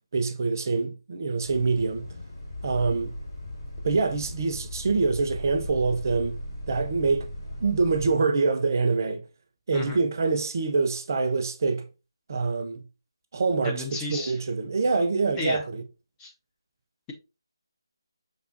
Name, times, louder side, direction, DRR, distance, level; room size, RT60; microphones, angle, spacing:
voice 1, 0.1-2.1 2.6-3.1 3.8-6.4 6.7-7.3 7.6-9.2 9.7-11.8 12.3-12.8 13.3-15.8, right 4 dB, 40° right, 0.6 m, -25 dB
Bus, 1.4-8.2, left 1 dB, 50° left, 2.2 m, -37 dB
voice 2, 13.6-14.4 15.4-15.6 16.2-16.3, left 3 dB, 15° left, 0.4 m, -33 dB
5.3 x 3.5 x 2.5 m
figure-of-eight pair, 160°, 3 cm